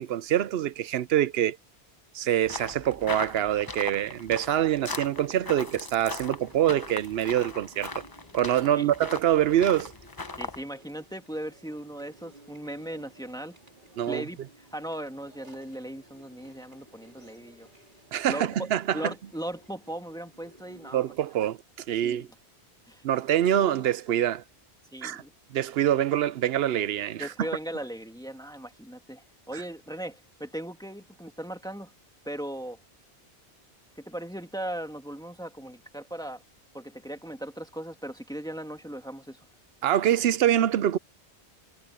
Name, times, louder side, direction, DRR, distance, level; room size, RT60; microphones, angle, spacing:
voice 1, 0.0-1.6 2.1-7.9 8.3-9.9 14.0-14.2 18.1-19.1 20.9-21.6 21.9-22.3 23.0-24.4 25.0-25.2 25.5-27.3 39.8-41.0, right 11 dB, 70° right, 0.8 m, -25 dB
sound 1, 2.4-10.6, left 3 dB, 25° left, 0.7 m, -39 dB
Chewing mastication, 4.9-21.0, right 2 dB, 45° right, 3.8 m, -56 dB
voice 2, 10.4-13.6 14.1-17.7 18.3-21.0 22.0-22.3 22.9-23.0 24.9-25.3 27.2-31.9 32.3-32.8 34.0-36.4 36.7-39.4, right 1 dB, 5° left, 1.9 m, -38 dB
omnidirectional pair, 1.1 m